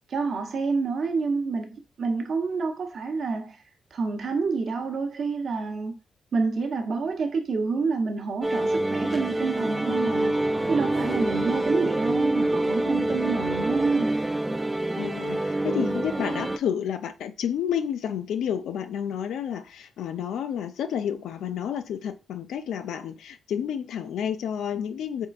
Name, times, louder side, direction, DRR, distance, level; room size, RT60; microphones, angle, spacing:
voice 1, 0.1-3.6 3.9-5.9 6.3-14.2, right 4 dB, 55° right, 0.8 m, -28 dB
sound 1, 8.4-16.6, right 1 dB, 15° right, 0.3 m, -26 dB
voice 2, 11.0-11.3 15.0-25.3, left 8 dB, 90° left, 0.4 m, -30 dB
4.3 x 3.6 x 2.4 m
cardioid pair, 115°, 0 cm